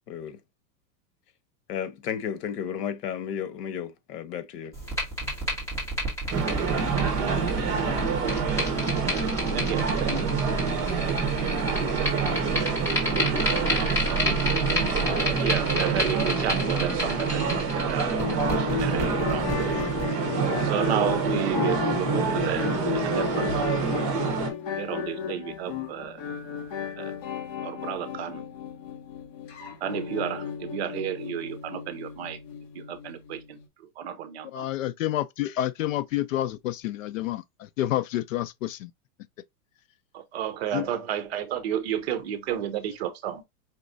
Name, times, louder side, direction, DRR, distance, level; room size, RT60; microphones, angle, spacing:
voice 1, 0.1-0.4 1.7-4.7, left 8 dB, 90° left, 1.2 m, -33 dB
sound 1, 4.7-20.0, right 1 dB, 5° left, 1.8 m, -30 dB
sound 2, 6.3-24.5, right 5 dB, 25° right, 1.2 m, -27 dB
voice 2, 9.5-10.3 15.4-19.5 20.6-23.7 24.1-24.3 24.8-26.2 27.0-27.1 27.6-28.4 29.8-32.4 32.7-34.7 40.1-43.4, right 10 dB, 45° right, 0.8 m, -32 dB
sound 3, 18.2-33.7, left 7 dB, 40° left, 1.4 m, -34 dB
voice 3, 34.5-38.9 40.7-40.9, left 13 dB, 60° left, 0.5 m, -29 dB
5.2 x 3.1 x 2.6 m
supercardioid pair, 175°, 46 cm